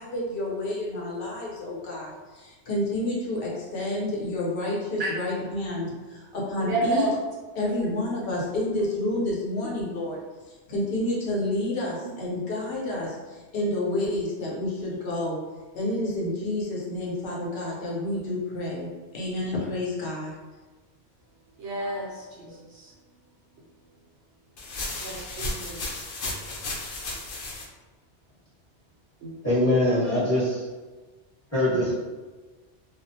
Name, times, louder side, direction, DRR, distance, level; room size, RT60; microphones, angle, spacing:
voice 1, 0.0-7.2 7.5-10.2 10.7-15.4 15.7-20.3, left 1 dB, 55° left, -4 dB, 0.8 m, -29 dB
voice 2, 6.6-7.1 12.0-12.1 21.6-22.9 25.0-26.0 29.2-29.3, right 2 dB, 75° right, -5 dB, 0.9 m, -31 dB
Rustling Bushes, 24.6-27.6, left 2 dB, 85° left, 0.9 m, -34 dB
voice 3, 29.4-30.6 31.5-31.9, left 1 dB, 15° left, -11 dB, 1.0 m, -22 dB
2.4 x 2.0 x 2.7 m, 1.3 s
omnidirectional pair, 1.3 m